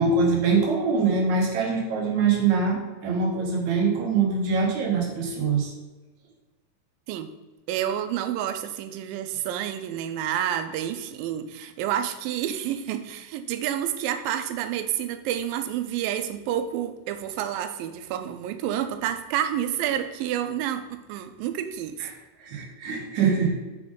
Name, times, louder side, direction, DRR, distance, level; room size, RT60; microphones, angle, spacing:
voice 1, 0.0-5.7 22.0-22.1 22.4-23.5, right 4 dB, 65° right, 0 dB, 2.3 m, -23 dB
voice 2, 7.7-22.1, right 10 dB, 85° right, 9 dB, 2.3 m, -29 dB
6.2 x 5.7 x 3.8 m, 1.2 s
omnidirectional pair, 4.0 m